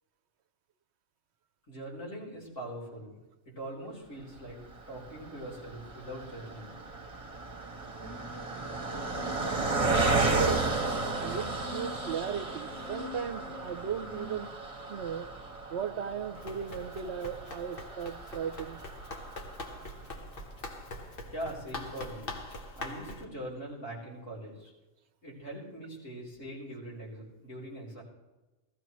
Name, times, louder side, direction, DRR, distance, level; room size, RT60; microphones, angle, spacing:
voice 1, 1.7-3.1 3.6-4.6 4.9-6.8 21.3-22.4 22.8-24.7 25.2-28.0, right 1 dB, 85° left, -5 dB, 4.0 m, -42 dB
Car passing by, 4.7-20.1 20.7-20.8 21.0-21.2, right 3 dB, 30° right, 1.2 m, -34 dB
sound 1, 8.0-14.5, left 3 dB, 15° left, 1.5 m, -47 dB
voice 2, 11.2-14.6 14.9-15.3 15.7-18.8, right 7 dB, 65° right, 10 dB, 0.9 m, -36 dB
Run, 16.3-23.3, left 2 dB, 50° left, 1.3 m, -43 dB
16.5 x 14.0 x 3.1 m, 1.1 s
omnidirectional pair, 1.3 m